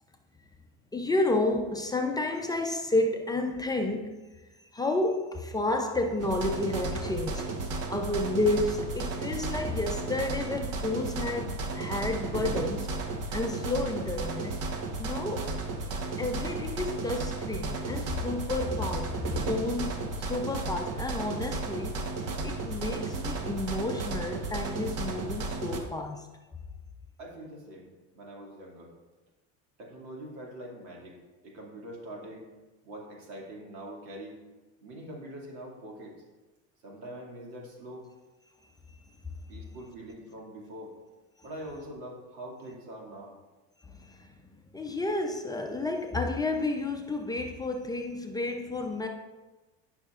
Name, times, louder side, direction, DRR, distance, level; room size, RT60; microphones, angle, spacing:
voice 1, 0.9-4.1 4.7-13.0 13.3-14.6 15.0-15.5 16.2-22.0 22.4-26.3 43.9-44.3 44.7-49.1, left 2 dB, 10° left, 0.6 m, -31 dB
sound 1, 6.2-25.8, right 3 dB, 55° right, 1.2 m, -34 dB
voice 2, 27.2-28.9 29.8-31.2 31.4-32.5 32.8-34.4 34.8-36.1 36.8-38.1 39.5-40.9 41.4-43.3, right 1 dB, 75° right, 2.5 m, -43 dB
12.0 x 5.8 x 2.5 m
supercardioid pair, 110°, 31 cm